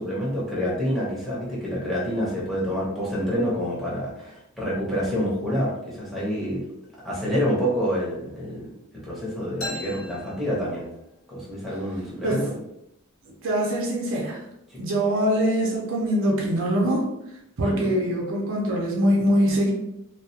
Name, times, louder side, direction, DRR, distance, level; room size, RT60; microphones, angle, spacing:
voice 1, 0.0-6.6 6.9-8.7 9.0-10.9 11.3-12.4 14.7-14.8 17.6-17.9, equal, ahead, -7 dB, 0.7 m, -27 dB
sound 1, 9.6-11.3, left 2 dB, 80° left, 0.6 m, -38 dB
voice 2, 13.4-14.4 14.8-17.1 17.6-19.7, equal, 60° right, -1 dB, 0.6 m, -23 dB
2.2 x 2.1 x 2.7 m, 0.83 s
head